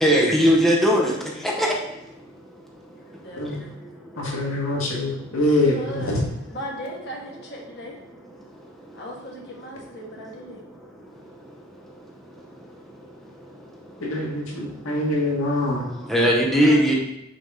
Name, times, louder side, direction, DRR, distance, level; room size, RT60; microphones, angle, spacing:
voice 1, 0.0-1.1 1.4-1.7 16.1-17.0, equal, ahead, -2 dB, 0.7 m, -18 dB
voice 2, 3.0-3.7 5.7-6.2 6.5-7.9 8.9-10.6 15.9-16.1 16.6-17.0, equal, 55° left, -1 dB, 1.4 m, -37 dB
voice 3, 4.2-6.2 14.0-15.8, left 1 dB, 85° left, -3 dB, 1.7 m, -24 dB
6.2 x 4.2 x 3.7 m, 0.90 s
head